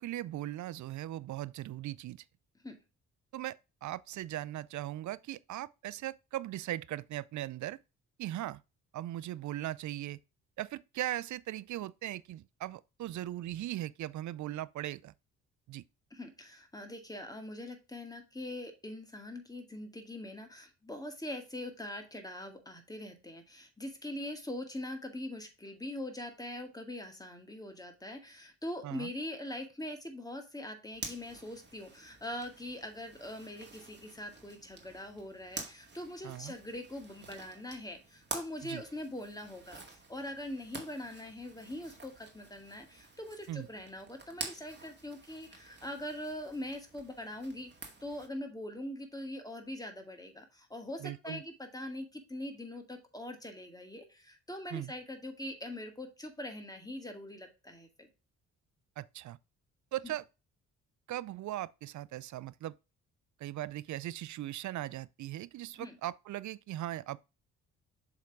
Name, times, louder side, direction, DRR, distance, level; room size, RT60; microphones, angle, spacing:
voice 1, 0.0-2.2 3.3-7.8 8.2-8.6 8.9-10.2 10.6-15.1 15.7-15.8 28.8-29.1 36.2-36.5 38.6-38.8 43.5-43.7 51.0-51.4 54.7-54.9 59.0-59.4 59.9-60.2 61.1-62.8 63.4-67.2, right 14 dB, 55° right, 0.5 m, -39 dB
voice 2, 16.1-47.7 48.0-58.1 60.0-60.1 65.7-66.0, left 1 dB, 10° left, 2.1 m, -42 dB
Zipper (clothing), 30.9-48.3, right 3 dB, 30° right, 2.0 m, -48 dB
7.1 x 3.6 x 4.7 m
hypercardioid pair, 50°, 36 cm